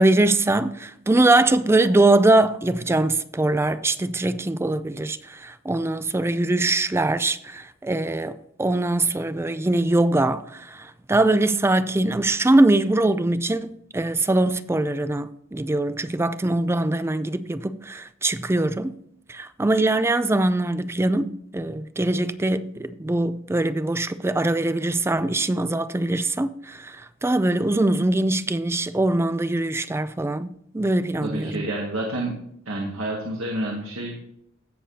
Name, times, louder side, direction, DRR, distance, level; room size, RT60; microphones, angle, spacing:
voice 1, 0.0-19.0 19.3-30.5 30.7-31.7, right 2 dB, 10° right, 0.4 m, -22 dB
voice 2, 31.2-32.4 32.7-34.2, right 1 dB, 90° right, 1.9 m, -29 dB
16.5 x 6.6 x 2.8 m
head